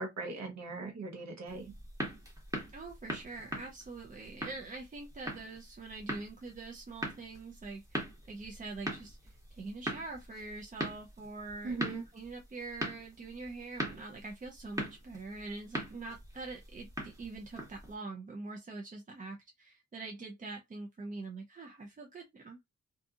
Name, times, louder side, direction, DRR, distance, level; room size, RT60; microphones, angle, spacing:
voice 1, 0.0-1.7 11.6-12.0, right 3 dB, 65° right, 0.9 m, -39 dB
sound 1, 1.5-17.9, right 1 dB, 10° right, 0.9 m, -42 dB
voice 2, 2.7-22.6, right 3 dB, 30° right, 0.4 m, -44 dB
2.7 x 2.6 x 2.3 m
wide cardioid pair, 160°, 29 cm